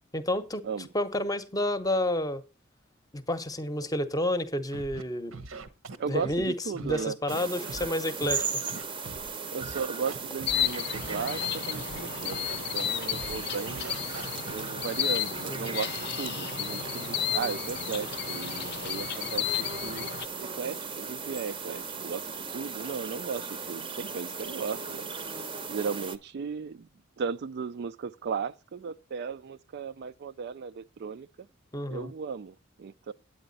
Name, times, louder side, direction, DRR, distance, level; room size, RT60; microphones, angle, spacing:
voice 1, 0.1-0.6 0.9-2.4 3.1-5.4 6.1-8.4 15.5-15.7 31.7-32.1, left 1 dB, 20° left, 0.8 m, -30 dB
Scratching (performance technique), 4.7-5.0 5.3-6.5 6.8-7.9 8.2-9.3 9.6-10.6 10.9-12.0 12.3-12.9 13.1-13.4 13.7-14.5, right 3 dB, 80° right, 1.0 m, -41 dB
voice 2, 6.0-7.2 9.5-13.9 14.4-20.1 20.6-25.1 25.7-26.9 27.2-31.5 31.9-33.1, right 5 dB, 55° right, 0.4 m, -36 dB
sound 1, 7.3-26.2, right 5 dB, 25° right, 0.7 m, -37 dB
sound 2, 10.5-20.3, left 10 dB, 55° left, 0.4 m, -33 dB
9.0 x 8.6 x 4.1 m
head